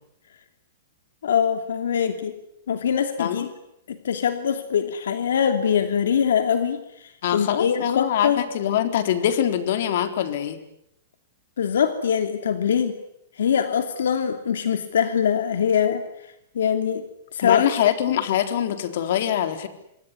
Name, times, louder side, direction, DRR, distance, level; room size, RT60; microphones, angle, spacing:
voice 1, 1.2-2.3 2.7-3.5 3.9-8.4 11.6-13.0 13.4-16.1 16.5-17.0 17.3-17.9, left 8 dB, 85° left, 8 dB, 2.7 m, -23 dB
voice 2, 7.2-10.6 17.4-19.7, left 10 dB, 60° left, 9 dB, 3.8 m, -23 dB
26.5 x 22.5 x 9.7 m, 0.79 s
hypercardioid pair, 155°, 0 cm